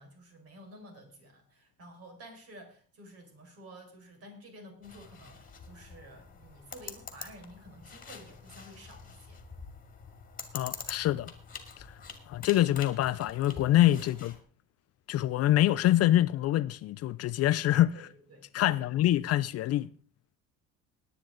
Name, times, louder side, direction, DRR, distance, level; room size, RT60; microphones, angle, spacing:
voice 1, 0.0-9.4 14.0-14.1 17.9-18.9, right 1 dB, 45° right, 5.4 m, -51 dB
sound 1, 4.8-14.4, left 5 dB, 25° left, 2.2 m, -46 dB
voice 2, 10.5-11.3 11.8-11.9 12.3-14.3 15.1-18.1 18.5-19.9, left 13 dB, 50° left, 0.5 m, -25 dB
19.0 x 9.4 x 3.9 m
cardioid pair, 140°, 32 cm